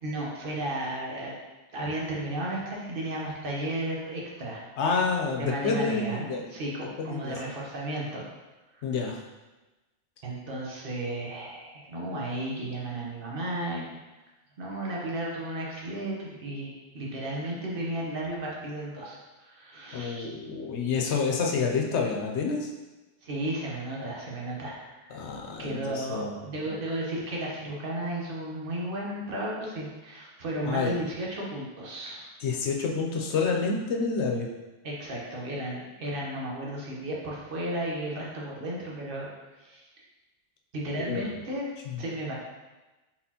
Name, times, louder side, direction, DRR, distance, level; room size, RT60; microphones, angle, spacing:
voice 1, 0.0-1.3 1.7-4.6 5.4-6.2 6.5-8.2 9.0-9.1 10.2-14.0 14.6-20.3 23.2-25.2 25.6-32.3 34.8-39.3 39.6-39.9 40.7-41.7 42.0-42.3, right 1 dB, 55° right, -3 dB, 1.1 m, -34 dB
voice 2, 4.8-6.5 7.0-7.4 8.8-9.2 19.9-22.7 25.1-26.4 26.6-26.8 30.6-31.0 32.4-34.5 41.1-41.4 41.9-42.0, left 4 dB, 75° left, 0 dB, 0.9 m, -28 dB
4.1 x 4.1 x 2.8 m, 1.1 s
omnidirectional pair, 1.2 m